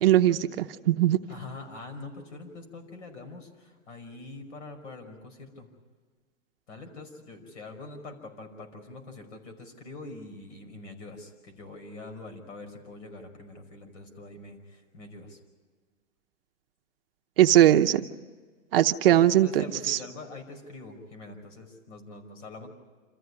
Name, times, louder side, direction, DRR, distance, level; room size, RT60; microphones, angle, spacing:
voice 1, 0.0-1.2 17.4-18.0 18.7-20.0, right 12 dB, 45° right, 7 dB, 0.8 m, -20 dB
voice 2, 1.3-5.7 6.7-15.4 19.1-22.7, left 2 dB, 60° left, 7 dB, 5.5 m, -44 dB
27.5 x 14.5 x 9.8 m, 1.4 s
hypercardioid pair, 160°, 40 cm